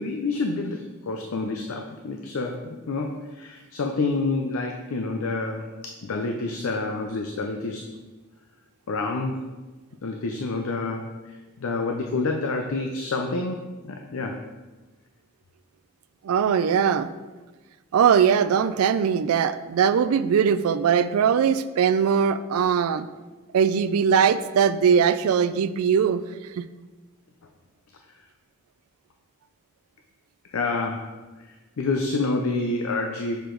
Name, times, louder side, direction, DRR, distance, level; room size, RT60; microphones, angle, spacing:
voice 1, 0.0-7.9 8.9-9.5 10.0-14.4 30.5-31.1 31.8-33.4, left 3 dB, 80° left, 3 dB, 0.5 m, -28 dB
voice 2, 16.2-17.1 17.9-23.1 23.5-26.2 26.6-26.7, right 7 dB, 90° right, 13 dB, 0.3 m, -21 dB
6.8 x 4.7 x 3.8 m, 1.2 s
head